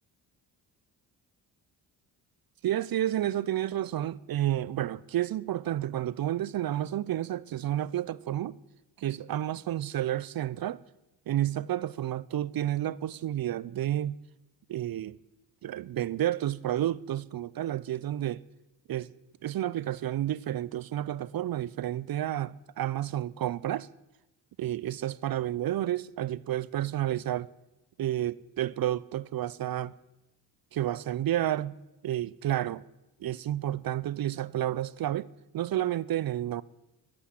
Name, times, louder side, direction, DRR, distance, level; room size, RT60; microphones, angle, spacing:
voice 1, 2.6-8.6 9.0-10.8 11.3-14.2 14.7-15.2 15.6-18.4 18.9-19.1 19.4-23.9 24.6-27.5 28.0-30.0 30.7-31.7 32.0-32.8 33.2-35.3 35.5-36.6, right 12 dB, 50° right, 0.6 m, -30 dB
13.0 x 8.7 x 9.6 m
supercardioid pair, 55°, 46 cm